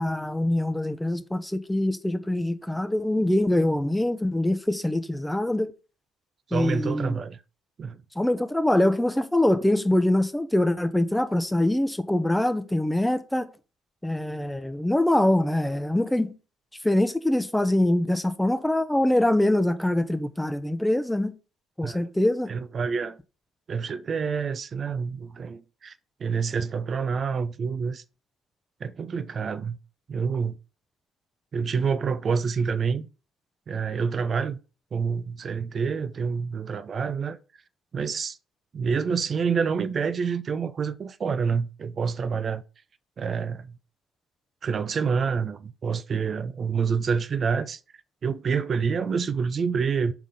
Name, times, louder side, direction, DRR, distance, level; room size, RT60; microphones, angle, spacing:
voice 1, 0.0-5.7 6.5-7.1 8.2-13.5 14.0-16.3 16.8-21.3 21.8-22.5, left 1 dB, 5° left, 0.7 m, -24 dB
voice 2, 6.5-7.4 7.8-8.0 21.8-22.1 22.5-23.2 23.7-25.9 26.2-28.0 28.8-29.8 30.1-30.6 31.5-33.1 33.7-34.6 34.9-37.4 37.9-38.4 38.7-42.6 43.2-43.8 44.6-47.8 48.2-50.1, right 5 dB, 45° right, 0.4 m, -27 dB
5.8 x 3.6 x 5.3 m
hypercardioid pair, 55°, 0 cm